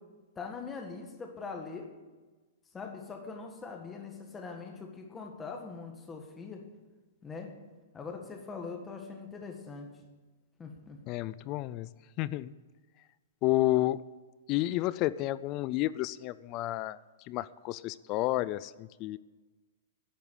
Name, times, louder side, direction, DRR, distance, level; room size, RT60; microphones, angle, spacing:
voice 1, 0.3-1.9 2.7-6.6 7.2-7.5 7.9-9.9 10.6-11.0, left 4 dB, 10° left, 3 dB, 1.6 m, -42 dB
voice 2, 11.1-11.9 12.2-12.5 13.4-14.0 14.5-17.0 17.3-19.2, left 16 dB, 30° left, 18 dB, 0.3 m, -30 dB
11.0 x 8.4 x 9.9 m, 1.3 s
hypercardioid pair, 165°, 0 cm